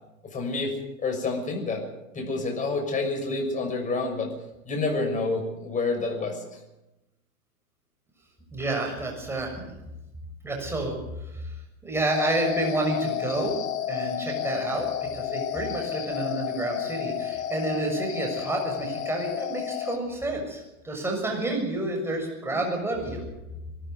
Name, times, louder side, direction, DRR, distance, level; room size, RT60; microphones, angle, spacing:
voice 1, 0.3-1.8 2.1-4.3 4.6-6.6, left 3 dB, 15° left, 2 dB, 6.2 m, -28 dB
voice 2, 8.5-9.5 10.4-10.9 11.3-11.5 11.8-13.5 13.9-23.2, right 2 dB, 5° right, 1 dB, 6.7 m, -29 dB
sound 1, 12.1-20.0, left 11 dB, 65° left, 2.8 m, -31 dB
22.5 x 14.0 x 9.6 m, 0.96 s
hypercardioid pair, 125°, 43 cm